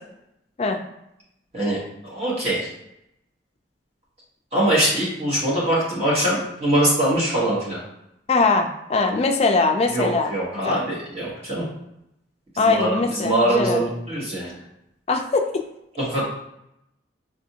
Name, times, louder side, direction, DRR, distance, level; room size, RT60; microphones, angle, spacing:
voice 1, 2.1-2.7 4.5-7.8 9.9-11.6 12.7-12.9 13.2-14.5 16.0-16.2, right 1 dB, 35° right, -7 dB, 1.1 m, -22 dB
voice 2, 8.3-10.8 12.6-13.9 15.1-15.6, left 3 dB, 35° left, 5 dB, 0.3 m, -21 dB
4.7 x 2.6 x 2.7 m, 0.82 s
head